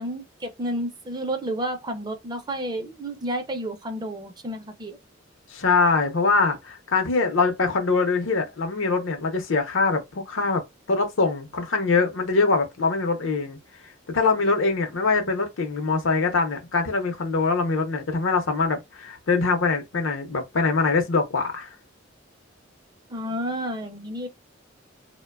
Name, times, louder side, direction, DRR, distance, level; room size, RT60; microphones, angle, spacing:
voice 1, 0.0-5.0 23.1-24.3, right 1 dB, 20° right, 0.4 m, -31 dB
voice 2, 5.5-10.6 10.9-13.6 14.1-21.7, left 4 dB, 80° left, 0.6 m, -23 dB
2.8 x 2.1 x 2.2 m
head